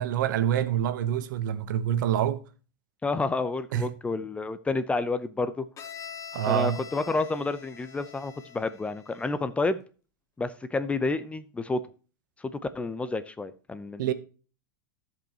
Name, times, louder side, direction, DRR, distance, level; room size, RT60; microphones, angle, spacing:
voice 1, 0.0-2.4 3.7-3.9 6.3-6.8 14.0-14.1, right 10 dB, 70° right, 1.0 m, -26 dB
voice 2, 3.0-5.6 6.5-9.8 10.4-11.8 12.4-14.1, left 3 dB, 10° left, 0.6 m, -30 dB
Bowed string instrument, 5.8-9.5, left 8 dB, 30° left, 1.2 m, -44 dB
16.0 x 5.4 x 2.9 m
hypercardioid pair, 115°, 11 cm